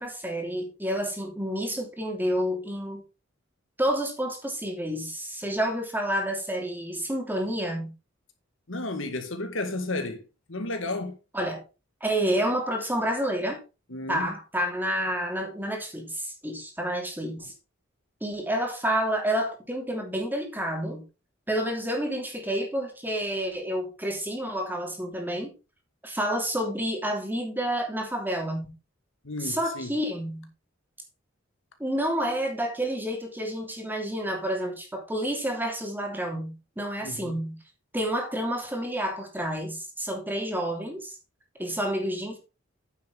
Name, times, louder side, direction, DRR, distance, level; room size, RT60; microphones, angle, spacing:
voice 1, 0.0-3.0 3.8-7.9 11.3-11.6 12.0-13.6 14.1-17.5 18.2-21.1 21.5-25.5 26.0-28.7 29.4-30.5 31.8-37.6 37.9-41.2 41.6-42.4, equal, 10° right, 2.8 m, -29 dB
voice 2, 8.7-10.2 10.5-11.2 13.9-14.3 29.2-29.9 37.0-37.3, left 2 dB, 70° left, 2.1 m, -32 dB
9.5 x 7.5 x 4.0 m
head